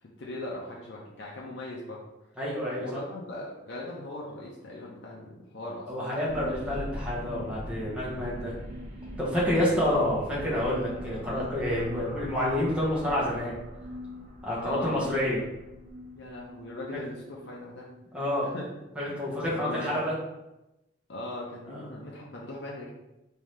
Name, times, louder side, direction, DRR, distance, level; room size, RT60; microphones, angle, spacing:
voice 1, 0.0-2.0 2.8-6.3 9.4-9.8 14.6-15.1 16.2-17.9 18.4-18.7 19.1-20.1 21.1-22.9, left 1 dB, 75° left, -3 dB, 0.5 m, -40 dB
voice 2, 2.4-2.9 5.9-8.5 9.2-13.5 14.4-15.4 18.1-18.5 19.0-20.1 21.7-21.9, left 1 dB, 5° right, -7 dB, 0.9 m, -28 dB
sound 1, 6.3-19.1, left 1 dB, 45° right, 1.0 m, -42 dB
3.6 x 2.7 x 3.1 m, 0.95 s
head